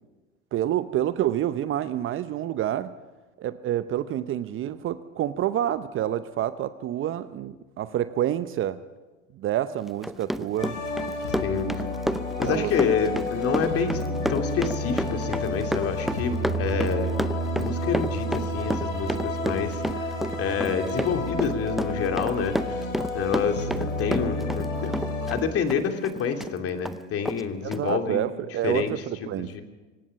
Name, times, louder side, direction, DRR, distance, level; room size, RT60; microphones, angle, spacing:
voice 1, 0.5-3.0 3.4-8.8 9.3-10.8 11.5-11.9 12.4-12.7 13.1-13.2 27.6-29.5, right 12 dB, 35° right, 13 dB, 0.7 m, -28 dB
Run, 9.9-24.7 24.9-26.5 26.8-27.0 27.2-27.4 27.7-27.8, equal, ahead, 0.6 m, -30 dB
sound 1, 10.6-25.4, left 1 dB, 85° left, 3.4 m, -30 dB
voice 2, 11.4-11.8 12.4-17.1 17.6-22.9 23.1-24.9 25.2-28.3 28.6-28.9 29.4-29.6, left 6 dB, 40° left, 5 dB, 2.7 m, -28 dB
25.0 x 18.0 x 5.7 m, 1.2 s
hypercardioid pair, 85°, 37 cm